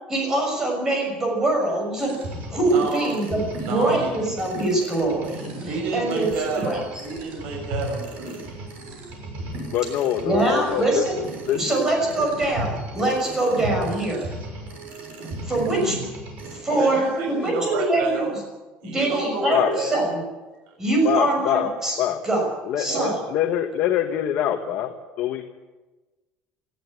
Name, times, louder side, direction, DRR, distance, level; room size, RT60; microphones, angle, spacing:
voice 1, 0.1-2.1 2.5-6.3 6.6-7.0 10.2-11.2 11.6-14.3 15.4-16.0 16.4-18.3 18.9-20.2 20.8-22.0 22.2-22.5 22.8-23.2, right 2 dB, 15° right, 1 dB, 6.3 m, -23 dB
sound 1, 2.0-16.5, right 1 dB, 55° right, 6.4 m, -35 dB
voice 2, 2.7-3.1 3.6-4.3 5.7-8.7 16.5-18.3 18.8-20.1 22.9-23.1, right 4 dB, 75° right, 0 dB, 6.6 m, -30 dB
voice 3, 9.7-11.0 11.5-11.6 12.2-12.3 19.5-19.7 21.0-21.7 22.0-22.2 22.6-25.5, left 11 dB, 50° left, 3 dB, 1.5 m, -24 dB
18.5 x 14.0 x 9.8 m, 1.2 s
cardioid pair, 170°, 3 cm